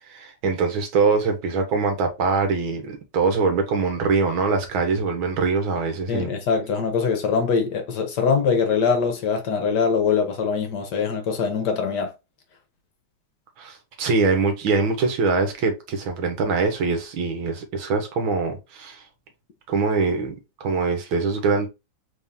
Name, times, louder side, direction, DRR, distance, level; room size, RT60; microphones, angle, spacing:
voice 1, 0.1-6.3 13.6-19.0 19.7-21.7, right 4 dB, 80° right, 1.8 m, -23 dB
voice 2, 6.1-12.1, left 6 dB, 65° left, 1.3 m, -23 dB
3.9 x 3.6 x 2.6 m
omnidirectional pair, 2.2 m